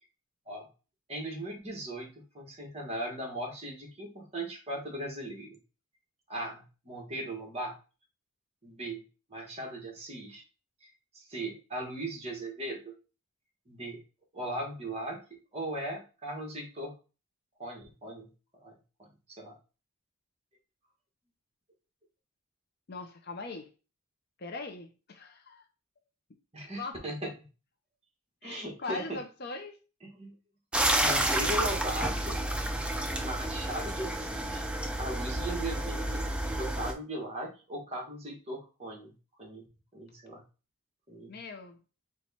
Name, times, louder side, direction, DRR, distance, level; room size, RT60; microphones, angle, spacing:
voice 1, 1.1-5.6 6.3-7.8 8.6-9.0 9.3-10.4 10.8-10.9 11.1-12.9 13.7-14.0 14.3-15.2 15.5-16.9 17.6-18.3 18.6-18.7 19.0-19.6 26.5-27.3 28.4-29.2 30.0-30.3 31.0-32.4 33.1-34.6 35.0-36.2 36.6-39.1 39.4-39.7 39.9-40.4 41.1-41.4, right 1 dB, 30° right, 1.3 m, -38 dB
voice 2, 22.9-23.7 24.4-25.6 26.8-27.1 28.4-29.8 41.3-41.8, left 3 dB, 45° left, 0.6 m, -40 dB
sound 1, 30.7-36.9, right 1 dB, 5° right, 0.3 m, -30 dB
4.4 x 2.3 x 4.1 m
head